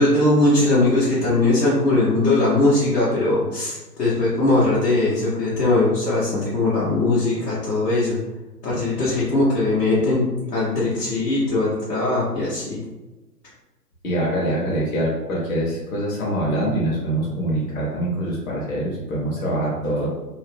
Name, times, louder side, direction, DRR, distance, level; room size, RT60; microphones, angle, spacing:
voice 1, 0.0-8.2 8.6-12.8, left 2 dB, 75° left, -9 dB, 1.1 m, -20 dB
voice 2, 14.0-20.1, right 1 dB, 55° left, -4 dB, 0.9 m, -24 dB
2.7 x 2.1 x 3.2 m, 1.1 s
figure-of-eight pair, 130°, 49 cm